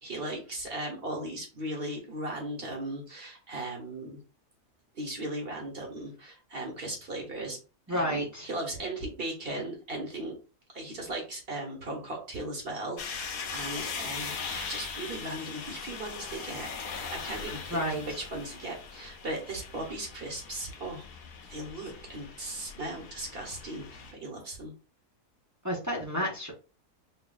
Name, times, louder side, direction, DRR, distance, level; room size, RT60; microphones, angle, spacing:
voice 1, 0.0-4.2 4.9-7.6 7.9-10.3 10.7-17.9 18.2-21.1 21.5-24.7, right 1 dB, 40° right, 1 dB, 1.2 m, -37 dB
voice 2, 7.9-8.5 17.7-18.2 25.6-26.5, equal, 15° right, -2 dB, 0.8 m, -30 dB
sound 1, 13.0-24.1, left 5 dB, 85° left, 1.3 m, -40 dB
5.7 x 2.5 x 2.3 m, 0.33 s
omnidirectional pair, 1.6 m